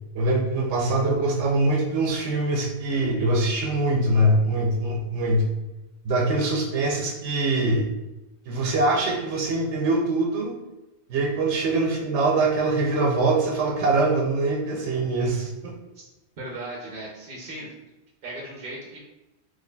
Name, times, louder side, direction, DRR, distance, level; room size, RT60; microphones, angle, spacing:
voice 1, 0.1-5.5 6.0-7.9 8.5-10.6 11.1-15.7, right 2 dB, 85° right, -1 dB, 0.9 m, -23 dB
voice 2, 16.4-17.7 18.2-19.0, right 1 dB, 55° right, -3 dB, 0.8 m, -37 dB
3.9 x 3.1 x 2.2 m, 1.0 s
omnidirectional pair, 1.2 m